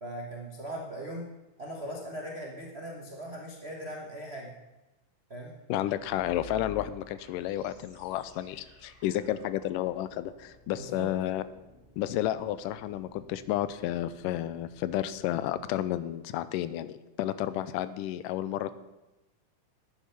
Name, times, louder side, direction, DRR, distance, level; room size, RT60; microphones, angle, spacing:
voice 1, 0.0-1.3 1.6-4.5 5.3-5.5 10.7-11.1, right 1 dB, 65° right, -2 dB, 0.6 m, -39 dB
voice 2, 5.7-11.4 12.0-18.7, left 13 dB, 90° left, 14 dB, 2.2 m, -31 dB
sound 1, 5.8-15.8, left 6 dB, 20° left, 1.5 m, -53 dB
10.5 x 9.7 x 5.8 m, 1.0 s
omnidirectional pair, 3.7 m